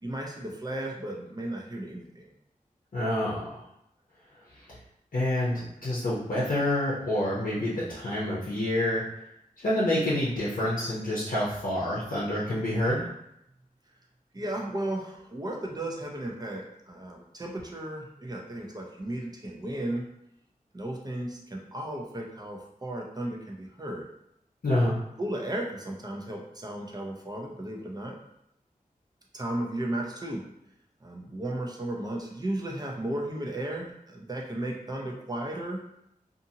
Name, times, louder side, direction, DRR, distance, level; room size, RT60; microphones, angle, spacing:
voice 1, 0.0-2.3 14.3-20.0 20.7-24.0 24.8-28.2 29.3-30.4 31.0-35.9, right 1 dB, 25° right, -1 dB, 0.6 m, -35 dB
voice 2, 2.9-3.6 4.5-4.6 5.1-9.0 9.6-13.0 24.6-24.9, left 1 dB, 65° left, -8 dB, 0.7 m, -27 dB
2.6 x 2.6 x 2.7 m, 0.79 s
wide cardioid pair, 55°, 15 cm